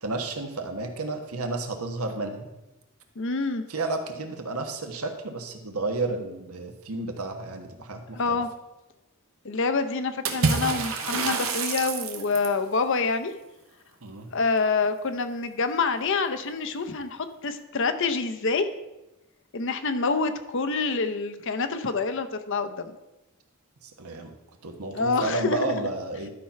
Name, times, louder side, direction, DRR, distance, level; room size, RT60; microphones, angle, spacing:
voice 1, 0.0-2.5 3.7-8.4 14.0-14.3 23.8-24.3 24.6-26.3, right 2 dB, 90° right, 5 dB, 1.3 m, -31 dB
voice 2, 3.2-3.6 8.1-8.5 9.4-13.3 14.3-18.7 19.5-22.9 24.9-25.6, left 4 dB, 60° left, 9 dB, 0.7 m, -27 dB
Water / Splash splatter, 10.2-12.6, right 4 dB, 70° right, 1.3 m, -27 dB
12.0 x 4.5 x 5.7 m, 0.97 s
head